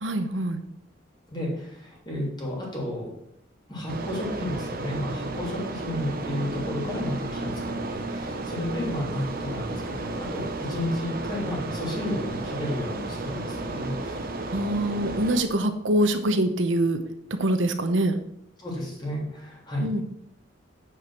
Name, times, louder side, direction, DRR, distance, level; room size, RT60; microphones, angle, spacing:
voice 1, 0.0-0.6 14.5-17.0 17.4-18.2 19.8-20.0, right 1 dB, 85° right, 8 dB, 0.9 m, -24 dB
voice 2, 1.3-3.1 3.7-14.4 18.6-20.0, left 1 dB, 25° left, -3 dB, 3.0 m, -32 dB
sound 1, 3.9-15.4, right 2 dB, 50° right, 0.9 m, -33 dB
9.0 x 4.8 x 6.1 m, 0.75 s
head